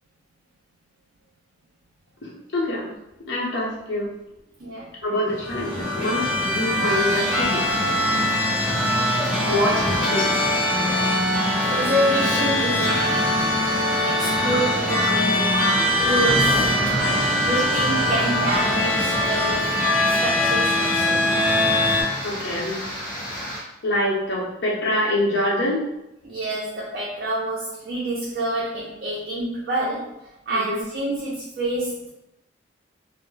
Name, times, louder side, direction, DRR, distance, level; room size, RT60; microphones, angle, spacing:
voice 1, 2.2-2.9 3.3-4.1 5.0-7.6 9.5-10.5 16.3-16.4 22.2-22.8 23.8-25.8 30.5-30.8, left 1 dB, 60° left, -5 dB, 0.7 m, -25 dB
voice 2, 4.6-5.0 8.1-8.5 11.7-13.4 14.0-15.7 16.0-16.7 17.4-19.8 20.1-21.2 26.2-30.2 30.5-32.1, right 1 dB, 50° right, -6 dB, 0.5 m, -27 dB
sound 1, 5.3-22.0, left 1 dB, 10° right, 1.2 m, -22 dB
sound 2, 6.8-23.6, equal, 25° left, 1.2 m, -32 dB
2.2 x 2.0 x 3.1 m, 0.87 s
head